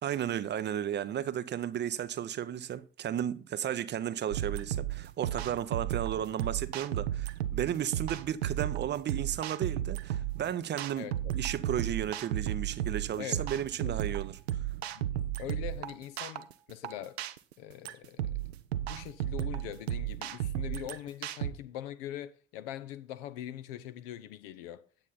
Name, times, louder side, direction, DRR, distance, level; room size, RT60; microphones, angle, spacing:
voice 1, 0.0-11.1 11.3-14.4, right 10 dB, 35° right, 0.6 m, -34 dB
sound 1, 4.3-21.5, right 12 dB, 75° right, 0.6 m, -34 dB
voice 2, 11.0-11.3 13.2-13.5 13.8-14.0 15.0-17.2 17.6-18.3 18.9-24.8, left 12 dB, 60° left, 0.8 m, -42 dB
8.8 x 8.3 x 3.9 m
figure-of-eight pair, 55°, 32 cm